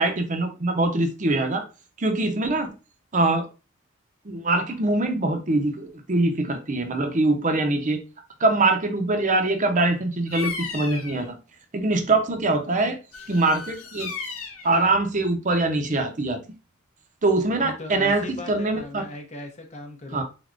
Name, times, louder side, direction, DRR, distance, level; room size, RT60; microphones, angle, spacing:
voice 1, 0.0-1.6 2.0-2.7 3.1-3.5 4.2-8.0 8.4-11.3 11.7-13.0 13.3-14.1 14.6-16.4 17.2-19.0 20.1-20.2, right 2 dB, 40° right, 0.7 m, -23 dB
Bird vocalization bird call bird song, 10.3-11.3 13.1-14.7, left 5 dB, 75° left, 0.7 m, -35 dB
voice 2, 17.6-20.2, left 2 dB, 35° left, 0.7 m, -38 dB
4.0 x 3.4 x 2.5 m
head